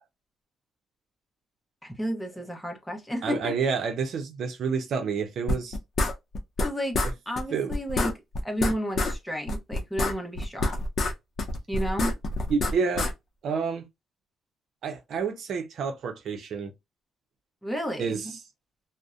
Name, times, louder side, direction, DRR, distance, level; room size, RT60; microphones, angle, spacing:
voice 1, 1.8-3.5 6.6-8.2 8.4-10.8 11.7-12.2 17.6-18.3, equal, 5° left, 0.8 m, -32 dB
voice 2, 3.2-5.8 7.5-7.7 12.5-13.1 13.4-13.8 14.8-16.7 18.0-18.2, right 5 dB, 65° right, 0.6 m, -29 dB
sound 1, 5.5-6.7 6.9-7.1 7.4-7.5 7.7-9.1 9.5-11.1 11.4-13.1, left 2 dB, 50° left, 0.6 m, -27 dB
2.5 x 2.1 x 2.4 m
cardioid pair, 90°, 0 cm